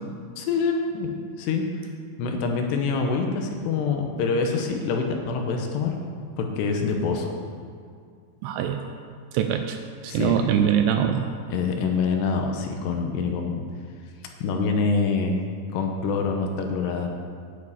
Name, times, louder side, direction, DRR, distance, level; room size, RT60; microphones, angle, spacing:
voice 1, 0.4-1.1 1.4-1.7 2.2-5.9 6.4-7.3 10.1-10.4 11.5-13.6 14.4-15.4 15.7-17.1, left 4 dB, 80° left, 3 dB, 2.9 m, -25 dB
voice 2, 8.4-8.8 9.3-9.8 10.0-11.3, right 9 dB, 85° right, 6 dB, 2.5 m, -23 dB
9.8 x 7.1 x 8.1 m, 2.2 s
omnidirectional pair, 5.2 m